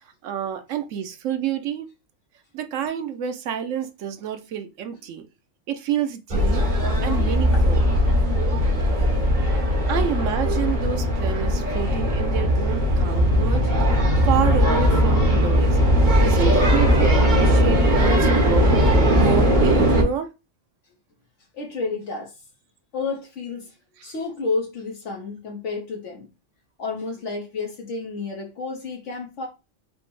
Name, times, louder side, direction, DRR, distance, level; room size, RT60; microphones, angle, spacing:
voice 1, 0.2-1.9 2.5-5.2 5.7-6.6 7.0-7.8 9.9-13.7 14.2-15.8 16.2-18.8 19.1-20.3 24.0-24.1, right 8 dB, 90° right, 1.0 m, -28 dB
sound 1, 6.3-20.0, equal, 40° right, 1.2 m, -19 dB
voice 2, 21.5-22.3 22.9-23.7 24.0-26.3 26.8-29.5, left 4 dB, 70° left, 1.3 m, -30 dB
5.0 x 2.1 x 4.6 m
omnidirectional pair, 1.3 m